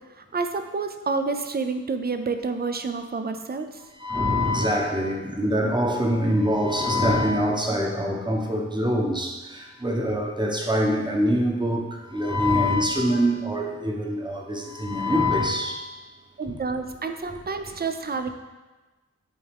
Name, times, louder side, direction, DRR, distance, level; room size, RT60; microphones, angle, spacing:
voice 1, 0.2-3.8 16.4-18.3, right 4 dB, 35° right, 8 dB, 0.5 m, -29 dB
voice 2, 4.0-15.8, equal, 15° right, 0 dB, 0.9 m, -24 dB
8.4 x 3.6 x 3.5 m, 1.2 s
wide cardioid pair, 100°, 30 cm